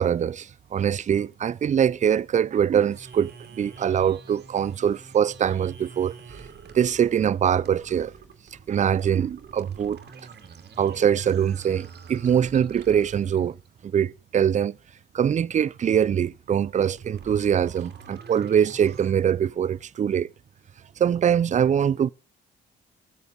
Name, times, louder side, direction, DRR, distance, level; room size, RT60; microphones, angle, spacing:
voice 1, 0.0-3.3 3.6-6.2 6.7-8.1 8.7-10.0 10.8-13.6 13.8-14.8 15.1-20.3 21.0-22.1, right 8 dB, 40° right, 0.5 m, -23 dB
sound 1, 2.9-13.7 16.7-19.1, right 5 dB, 55° right, 2.4 m, -46 dB
16.0 x 8.0 x 3.9 m
cardioid pair, 90°, 20 cm